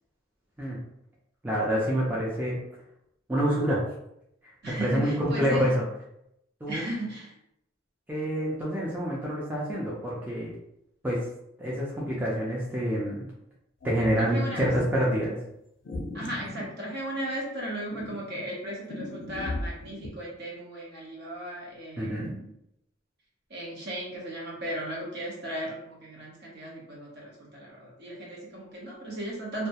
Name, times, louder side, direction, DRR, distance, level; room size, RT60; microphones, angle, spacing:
voice 1, 1.4-2.6 3.3-3.9 4.7-5.8 6.6-6.8 8.1-10.5 11.0-11.3 11.6-13.3 13.8-15.4 22.0-22.4, equal, 10° right, -6 dB, 0.4 m, -27 dB
voice 2, 4.6-5.7 6.7-7.3 14.2-14.7 16.1-22.5 23.5-29.7, right 1 dB, 55° right, -4 dB, 0.8 m, -36 dB
sound 1, 13.8-15.0 15.8-17.4 17.9-20.1, left 1 dB, 60° left, 0.4 m, -37 dB
2.2 x 2.1 x 2.7 m, 0.79 s
head